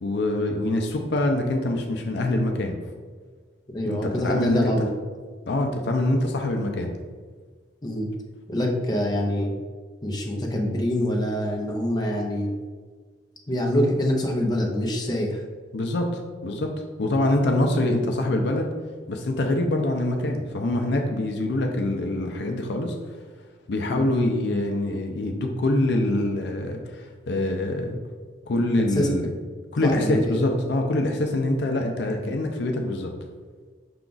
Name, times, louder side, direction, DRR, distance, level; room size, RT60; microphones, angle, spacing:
voice 1, 0.0-2.7 3.8-4.7 5.5-6.9 15.7-16.7 17.0-18.7 19.1-23.2 23.7-28.0 28.5-29.3 29.7-33.1, left 1 dB, 65° left, 3 dB, 0.5 m, -25 dB
voice 2, 3.7-4.9 7.8-8.1 8.5-9.5 10.0-12.5 13.5-15.4 23.9-24.1 28.9-29.2 29.8-30.2, left 1 dB, 20° left, 0 dB, 0.6 m, -25 dB
5.7 x 2.4 x 3.8 m, 1.5 s
head